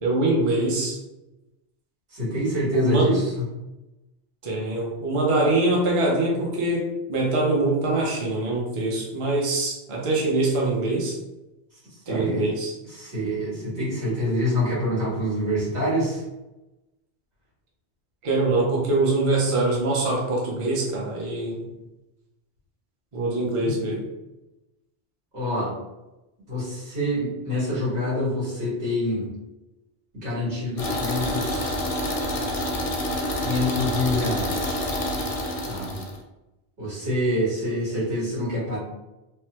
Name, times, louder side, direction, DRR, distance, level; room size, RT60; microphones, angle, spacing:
voice 1, 0.0-1.0 2.7-3.1 4.4-11.2 12.1-12.7 18.2-21.6 23.1-24.0, right 2 dB, 35° right, -3 dB, 0.6 m, -23 dB
voice 2, 2.1-3.4 12.1-12.4 12.9-16.2 23.6-23.7 25.3-25.7 26.5-29.3 30.2-31.8 33.3-34.9 35.7-36.0 36.8-38.8, left 1 dB, 80° right, -9 dB, 1.8 m, -26 dB
sound 1, 30.8-36.2, left 1 dB, 45° left, 0.5 m, -27 dB
3.4 x 2.1 x 2.9 m, 0.99 s
omnidirectional pair, 1.1 m